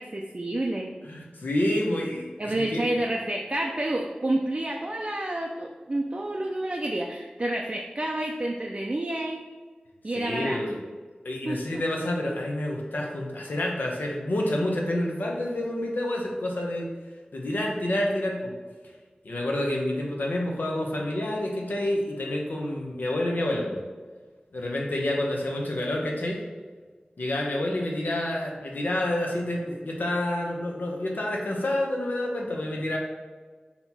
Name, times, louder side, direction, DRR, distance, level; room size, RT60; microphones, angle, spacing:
voice 1, 0.0-0.9 2.4-9.5 10.0-10.6 11.5-11.8, right 1 dB, 35° right, 0 dB, 0.4 m, -29 dB
voice 2, 1.0-2.8 10.1-10.8 11.2-16.9 17.3-18.5 19.2-23.8 24.5-26.4 27.2-33.0, left 1 dB, 80° left, -1 dB, 0.8 m, -28 dB
4.2 x 2.9 x 4.1 m, 1.4 s
wide cardioid pair, 75°, 3 cm